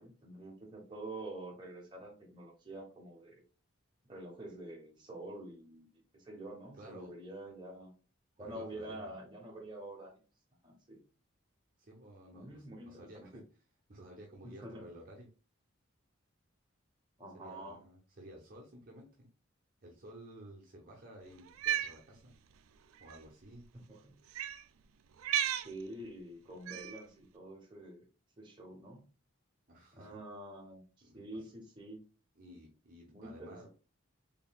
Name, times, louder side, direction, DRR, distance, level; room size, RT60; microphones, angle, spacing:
voice 1, 0.0-3.4 4.1-5.9 6.1-7.9 8.4-10.1 10.6-11.0 12.3-13.3 14.4-14.9 17.2-17.8 23.9-24.2 25.6-28.0 28.4-29.0 29.9-32.0 33.1-33.7, right 1 dB, 20° right, -1 dB, 1.0 m, -47 dB
voice 2, 6.7-7.1 8.4-9.1 11.8-13.4 13.9-15.3 17.3-19.3 19.8-22.3 23.0-23.6 29.7-30.2 31.0-31.5 32.4-33.7, right 1 dB, 40° right, -1 dB, 0.8 m, -53 dB
Cat, 21.5-22.0 23.0-23.2 24.3-24.6 25.2-25.7 26.7-27.0, right 10 dB, 85° right, 0.4 m, -33 dB
4.0 x 3.5 x 2.3 m, 0.34 s
head